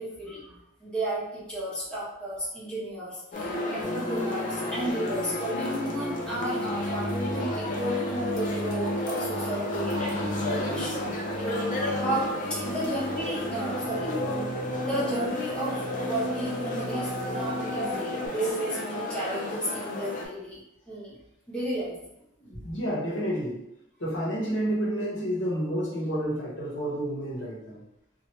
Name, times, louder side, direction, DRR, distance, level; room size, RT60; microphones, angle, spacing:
voice 1, 0.0-11.2 11.9-20.6 20.9-21.2 21.5-21.9, right 1 dB, 5° left, -9 dB, 1.2 m, -33 dB
sound 1, 3.3-20.2, left 2 dB, 45° left, 0.5 m, -33 dB
sound 2, 3.8-18.3, equal, 15° right, 0.8 m, -34 dB
voice 2, 22.4-23.6 24.0-27.8, equal, 75° left, -4 dB, 1.0 m, -30 dB
2.9 x 2.4 x 3.1 m, 0.82 s
head